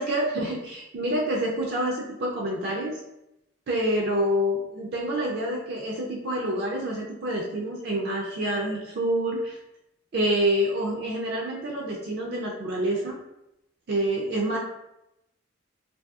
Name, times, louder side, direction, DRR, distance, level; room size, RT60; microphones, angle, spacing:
voice 1, 0.0-3.0 3.7-9.6 10.1-13.1 13.9-14.6, right 1 dB, 50° right, -2 dB, 0.4 m, -27 dB
2.6 x 2.6 x 2.3 m, 0.87 s
head